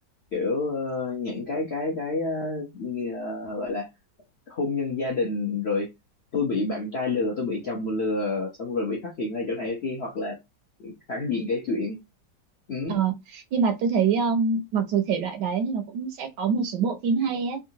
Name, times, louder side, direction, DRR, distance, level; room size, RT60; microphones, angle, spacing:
voice 1, 0.3-3.9 4.5-5.9 6.3-10.4 10.8-12.0 12.7-13.0, left 3 dB, 60° left, 0.7 m, -28 dB
voice 2, 12.9-17.6, right 5 dB, 70° right, 1.1 m, -25 dB
3.6 x 2.4 x 2.7 m
omnidirectional pair, 2.1 m